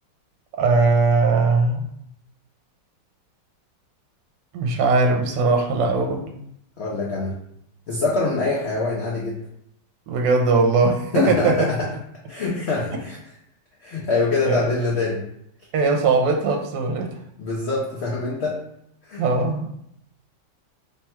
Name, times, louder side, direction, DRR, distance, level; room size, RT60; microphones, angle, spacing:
voice 1, 0.5-1.8 4.5-6.3 10.1-11.6 14.4-14.6 15.7-17.1 19.2-19.7, right 3 dB, 75° right, 2 dB, 1.2 m, -20 dB
voice 2, 6.8-7.3 7.9-9.4 11.1-11.9 12.3-13.2 13.8-15.2 17.4-18.6 19.1-19.2, left 3 dB, 80° left, -4 dB, 0.5 m, -24 dB
3.3 x 2.2 x 4.2 m, 0.74 s
omnidirectional pair, 2.0 m